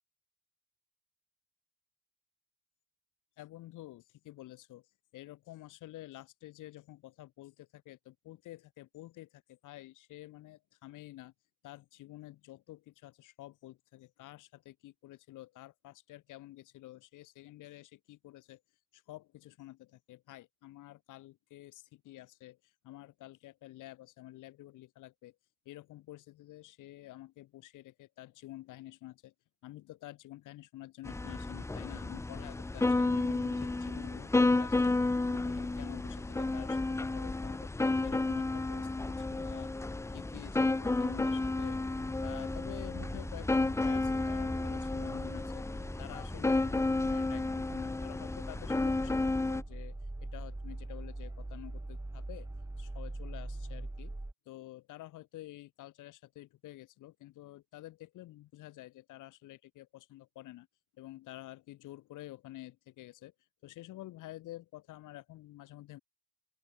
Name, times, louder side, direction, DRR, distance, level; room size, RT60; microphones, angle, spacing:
voice 1, 3.4-4.9 5.1-11.3 11.6-18.6 18.9-25.4 25.6-29.3 29.6-37.7 38.0-39.7 40.1-41.8 42.2-45.7 46.0-49.2 49.5-52.5 52.8-54.1 54.5-60.7 61.0-63.3 63.6-66.0, left 16 dB, 90° left, 2.7 m, -49 dB
sound 1, 31.0-49.6, left 2 dB, 10° left, 0.5 m, -32 dB
sound 2, 39.6-54.3, right 2 dB, 10° right, 1.7 m, -44 dB
open air
cardioid pair, 90°, 30 cm